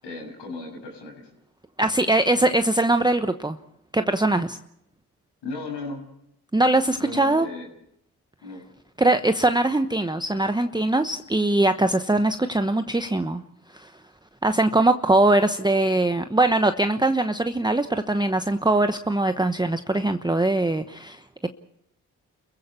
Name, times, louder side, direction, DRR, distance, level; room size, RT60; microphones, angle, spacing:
voice 1, 0.0-1.3 5.4-6.0 7.0-7.7 8.4-8.6, left 2 dB, 80° left, 0 dB, 6.9 m, -36 dB
voice 2, 1.8-3.6 3.9-4.6 6.5-7.5 9.0-13.4 13.7-13.9 14.4-21.5, right 2 dB, 10° right, 9 dB, 1.0 m, -22 dB
29.0 x 15.5 x 7.0 m, 0.75 s
hypercardioid pair, 40°, 42 cm